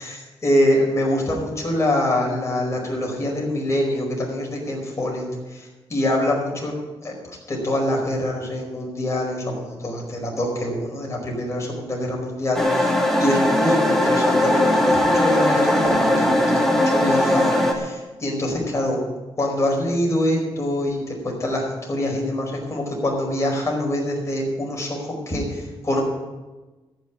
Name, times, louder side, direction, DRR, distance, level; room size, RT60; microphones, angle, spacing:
voice 1, 0.0-5.2 5.5-6.7 7.0-7.1 7.5-19.0 19.4-26.0, left 1 dB, 30° left, -2 dB, 5.0 m, -25 dB
sound 1, 12.5-17.7, left 1 dB, 5° left, 2.2 m, -19 dB
14.0 x 6.6 x 9.6 m, 1.2 s
cardioid pair, 95°, 10 cm